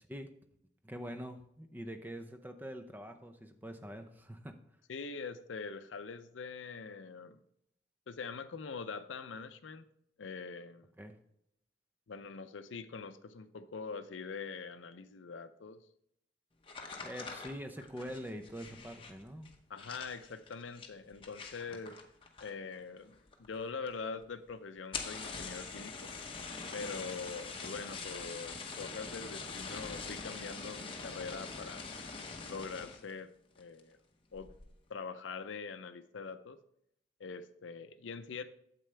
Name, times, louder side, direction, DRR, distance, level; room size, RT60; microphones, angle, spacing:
voice 1, 0.8-4.6 11.0-11.2 17.0-19.5, equal, 10° right, 7 dB, 0.6 m, -44 dB
voice 2, 4.9-7.4 8.1-9.9 10.2-10.9 12.1-15.8 19.7-22.0 22.4-26.1 26.7-32.1 32.5-33.3 33.6-34.0 34.3-34.5 34.9-36.6 37.2-38.4, left 5 dB, 85° left, 10 dB, 0.5 m, -43 dB
sound 1, 16.6-22.8 23.0-23.6 23.9-24.0 24.2-24.3 24.8-33.1 33.6-33.9 34.3-34.7, left 4 dB, 30° left, 0.9 m, -44 dB
8.9 x 7.6 x 3.3 m, 0.76 s
head